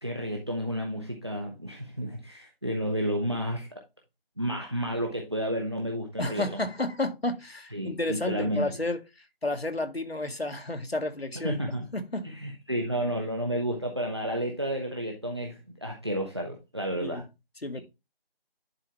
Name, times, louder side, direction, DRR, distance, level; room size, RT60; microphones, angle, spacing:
voice 1, 0.0-3.8 4.4-6.6 7.7-8.7 11.4-11.9 12.2-17.2, equal, 25° right, 1.0 m, -31 dB
voice 2, 6.2-11.6 11.9-12.3 17.0-17.3 17.6-17.8, left 2 dB, 85° left, 1.7 m, -31 dB
10.5 x 4.2 x 3.3 m
figure-of-eight pair, 170°, 30 cm